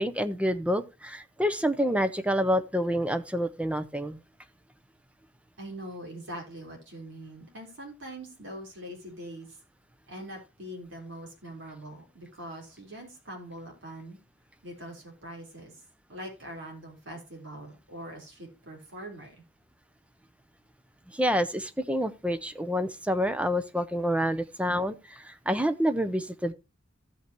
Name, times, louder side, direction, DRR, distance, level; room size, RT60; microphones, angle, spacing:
voice 1, 0.0-4.2 21.1-26.5, equal, 5° right, 0.6 m, -28 dB
voice 2, 5.6-9.5 10.1-14.2 14.6-15.7 16.1-19.4, right 1 dB, 70° right, 3.9 m, -43 dB
15.5 x 5.7 x 2.9 m
head